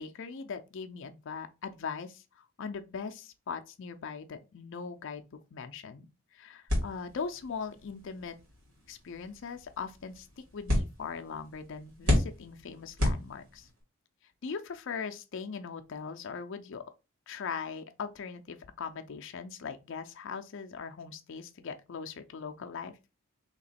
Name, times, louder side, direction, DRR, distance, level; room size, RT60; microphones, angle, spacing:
voice 1, 0.0-6.1 6.3-8.4 8.9-13.7 14.4-16.8 17.3-23.0, left 5 dB, 60° left, 0.5 m, -40 dB
sound 1, 6.7-13.8, left 1 dB, 75° right, 1.9 m, -33 dB
3.2 x 2.9 x 4.1 m
head